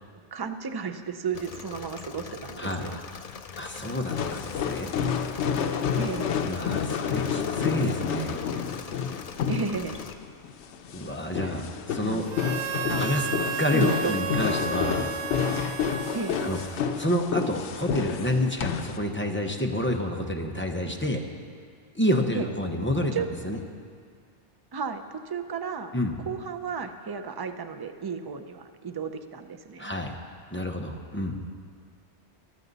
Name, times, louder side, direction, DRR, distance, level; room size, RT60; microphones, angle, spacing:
voice 1, 0.3-3.0 6.0-6.6 9.5-10.0 11.4-11.6 12.0-12.3 12.9-13.0 13.7-14.3 16.1-16.4 22.3-22.5 23.1-23.3 24.7-25.9 26.3-29.9, right 5 dB, 35° right, 8 dB, 0.4 m, -33 dB
Engine / Mechanisms, 1.3-10.1, left 6 dB, 50° left, 0.5 m, -41 dB
voice 2, 3.6-4.9 6.4-8.4 10.9-12.3 13.0-13.3 13.6-15.0 16.4-16.6 17.0-21.2 21.9-23.1 23.4-23.6 25.9-26.2 29.8-30.1 30.5-31.4, left 1 dB, 10° left, 2 dB, 0.8 m, -28 dB
sound 1, 4.1-19.0, left 7 dB, 90° left, 1.0 m, -29 dB
Harmonica, 12.3-17.1, right 6 dB, 80° right, 0.9 m, -33 dB
14.5 x 12.5 x 4.1 m, 2.1 s
omnidirectional pair, 1.1 m